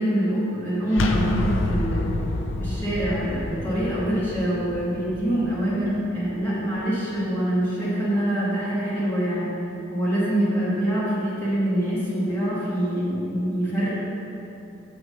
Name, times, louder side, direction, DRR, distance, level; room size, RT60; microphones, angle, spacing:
voice 1, 0.0-2.1 2.6-9.6 9.9-13.9, right 1 dB, 10° left, -11 dB, 1.9 m, -25 dB
sound 1, 0.9-6.6, left 2 dB, 85° left, 0.5 m, -29 dB
7.1 x 4.7 x 6.5 m, 2.9 s
head